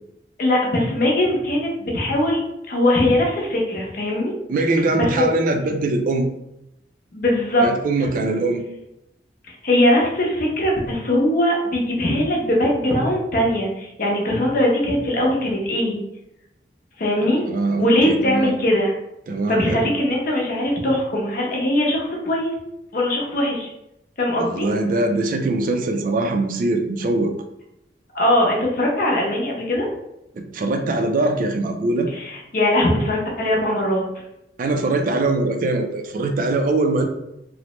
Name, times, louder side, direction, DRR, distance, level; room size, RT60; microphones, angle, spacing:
voice 1, 0.4-2.4 2.7-4.3 4.9-5.1 7.1-7.6 9.6-16.0 17.0-17.4 17.8-18.9 19.5-22.5 22.9-23.7 24.2-24.7 28.1-29.9 32.1-34.0, left 1 dB, 50° left, -1 dB, 0.7 m, -20 dB
voice 2, 4.5-6.3 7.6-8.6 17.5-18.5 19.3-19.9 24.3-27.3 30.3-32.1 34.6-37.0, right 2 dB, 50° right, 5 dB, 0.3 m, -22 dB
3.0 x 2.0 x 2.9 m, 0.85 s
head